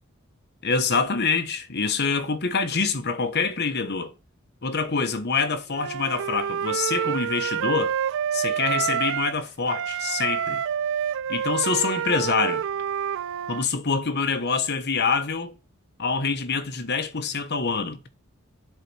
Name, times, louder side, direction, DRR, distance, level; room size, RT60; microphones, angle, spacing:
voice 1, 0.6-4.1 4.6-7.9 8.3-10.6 11.3-12.6 13.5-15.5 16.0-18.0, left 5 dB, 55° left, 1.2 m, -25 dB
Wind instrument woodwind instrument, 5.7-9.4 9.7-13.7, right 8 dB, 60° right, 0.4 m, -28 dB
10.0 x 4.2 x 6.1 m
head